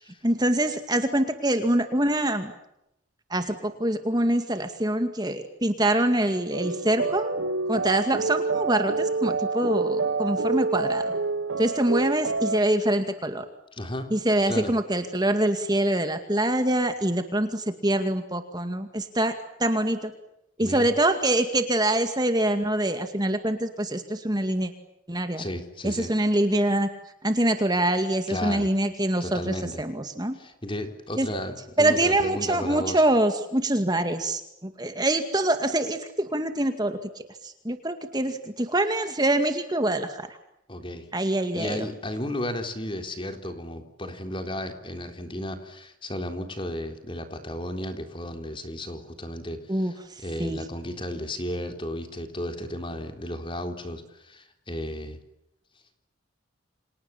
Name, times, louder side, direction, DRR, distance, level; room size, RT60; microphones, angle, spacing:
voice 1, 0.2-2.5 3.3-7.3 7.7-11.1 11.6-13.4 14.1-20.1 20.6-24.7 25.1-25.4 25.8-26.9 27.2-30.4 31.2-31.3 31.8-40.3 41.1-41.9 49.7-49.9 50.4-50.6, right 1 dB, 20° right, 7 dB, 2.2 m, -25 dB
sound 1, 6.5-12.6, right 3 dB, 70° right, 1.4 m, -27 dB
voice 2, 13.7-14.2 14.5-14.7 20.6-20.9 25.4-26.1 28.3-28.7 29.2-29.8 30.3-33.0 40.7-41.1 41.5-55.2, left 1 dB, 25° left, 6 dB, 3.8 m, -34 dB
30.0 x 27.0 x 7.3 m, 0.83 s
head